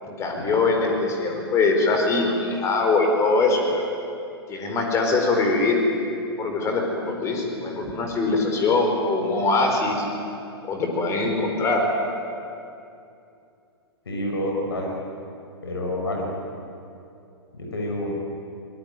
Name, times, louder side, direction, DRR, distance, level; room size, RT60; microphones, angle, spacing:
voice 1, 0.0-3.9 4.5-5.8 6.4-10.0 10.7-11.9, left 3 dB, 20° left, 2 dB, 4.9 m, -22 dB
voice 2, 14.1-14.9 15.6-16.2 17.5-18.1, left 1 dB, 65° left, 0 dB, 5.7 m, -28 dB
23.5 x 21.0 x 9.4 m, 2.6 s
figure-of-eight pair, 110°, 14 cm